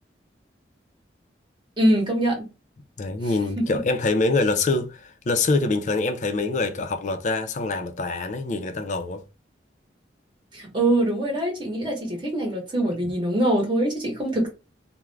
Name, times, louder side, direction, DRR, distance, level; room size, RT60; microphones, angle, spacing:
voice 1, 1.8-2.5 3.2-3.7 10.5-14.5, right 1 dB, 25° right, 0.9 m, -24 dB
voice 2, 3.0-9.2, left 3 dB, 40° left, 0.4 m, -25 dB
2.3 x 2.0 x 3.2 m
head